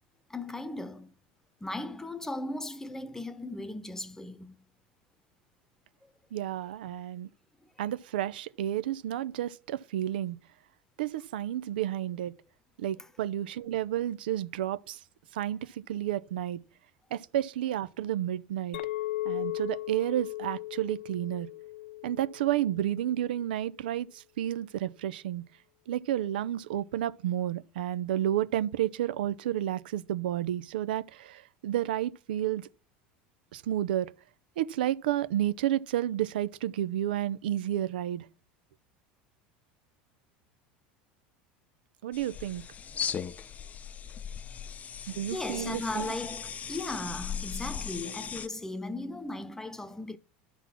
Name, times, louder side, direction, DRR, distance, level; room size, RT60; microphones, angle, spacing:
voice 1, 0.3-1.1 1.6-4.7 6.0-6.1 45.3-50.2, left 2 dB, 10° left, 0.9 m, -37 dB
voice 2, 6.3-7.3 7.8-10.4 11.0-12.3 12.8-15.0 15.3-16.6 17.1-18.8 19.2-21.5 22.0-25.4 25.9-32.7 33.5-34.1 34.6-38.3 42.0-42.6 45.2-46.1, right 12 dB, 85° right, 0.6 m, -31 dB
Chink clink, 18.7-23.2, left 17 dB, 90° left, 0.4 m, -37 dB
sound 1, 42.1-48.5, left 7 dB, 30° left, 0.6 m, -38 dB
12.0 x 4.1 x 5.7 m
supercardioid pair, 100°, 5 cm